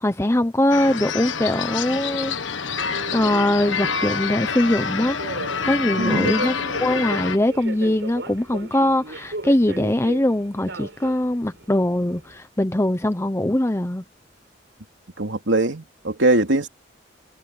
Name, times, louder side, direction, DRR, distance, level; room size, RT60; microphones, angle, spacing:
voice 1, 0.0-2.9 3.1-5.2 5.6-6.5 6.8-14.0, left 1 dB, 15° left, 0.8 m, -22 dB
sound 1, 0.7-7.4, left 6 dB, 85° left, 1.5 m, -27 dB
Subway metro underground, 2.7-12.4, right 2 dB, 70° right, 6.0 m, -36 dB
voice 2, 6.0-6.4 15.2-16.7, right 2 dB, 85° right, 2.9 m, -21 dB
head